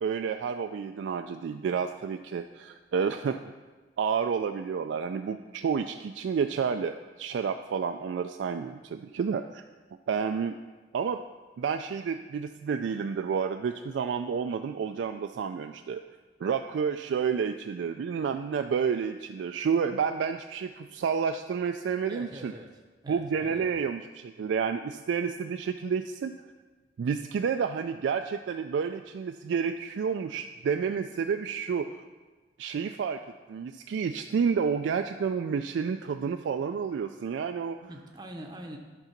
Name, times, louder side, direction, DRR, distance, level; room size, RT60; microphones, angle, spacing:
voice 1, 0.0-3.5 4.0-9.6 10.1-10.6 10.9-11.2 11.6-16.0 16.4-22.5 23.1-26.3 27.0-32.0 32.6-33.2 33.5-37.9, right 6 dB, 80° right, 6 dB, 0.3 m, -30 dB
voice 2, 22.1-22.7 23.0-23.8 37.9-38.8, right 1 dB, 20° right, 2 dB, 0.7 m, -44 dB
11.0 x 3.8 x 5.8 m, 1.3 s
head